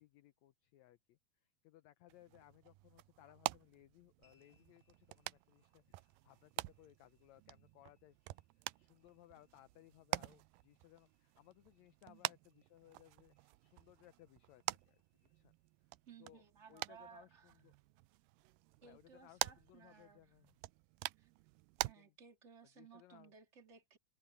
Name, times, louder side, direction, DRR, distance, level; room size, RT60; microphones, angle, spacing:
voice 1, 0.0-15.0 15.3-15.5 16.2-16.4 16.7-17.7 18.8-20.6 22.0-22.1 22.7-23.3, left 14 dB, 75° left, 1.7 m, -64 dB
sound 1, 2.1-21.9, right 20 dB, 90° right, 2.3 m, -47 dB
sound 2, 4.2-18.8, left 5 dB, 65° right, 9.3 m, -85 dB
voice 2, 16.1-17.5 18.8-20.3 21.2-21.3 21.8-24.0, right 6 dB, 20° right, 2.7 m, -60 dB
omnidirectional pair, 3.9 m